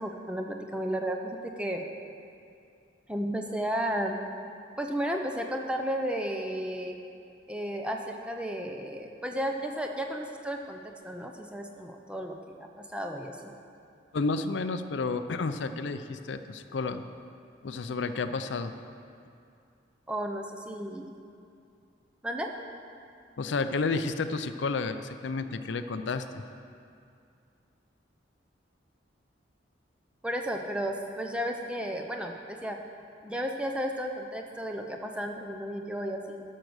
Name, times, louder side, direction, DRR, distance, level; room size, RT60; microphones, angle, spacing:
voice 1, 0.0-1.9 3.1-4.2 4.8-7.0 7.5-10.8 11.0-13.4 20.1-21.1 22.2-22.5 30.2-32.8 33.2-36.4, equal, 5° right, 2 dB, 0.6 m, -33 dB
voice 2, 14.1-17.1 17.6-18.7 23.4-26.4, left 3 dB, 75° left, 10 dB, 0.5 m, -31 dB
12.0 x 6.5 x 6.3 m, 2.5 s
head